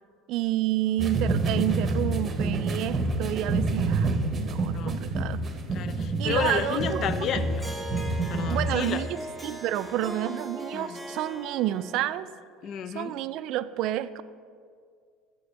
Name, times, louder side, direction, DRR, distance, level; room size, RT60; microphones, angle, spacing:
voice 1, 0.3-5.4 6.2-7.0 7.3-7.5 8.5-9.2 9.4-12.3 12.9-14.2, right 13 dB, 60° right, 14 dB, 0.3 m, -29 dB
sound 1, 1.0-8.8, right 2 dB, 25° right, 0.8 m, -28 dB
voice 2, 5.7-7.6 8.3-9.1 10.7-11.0 12.6-13.1, left 8 dB, 45° left, 13 dB, 0.4 m, -32 dB
Harp, 6.4-12.2, right 1 dB, 5° left, 0.8 m, -39 dB
7.0 x 6.6 x 5.7 m, 2.1 s
supercardioid pair, 125°, 0 cm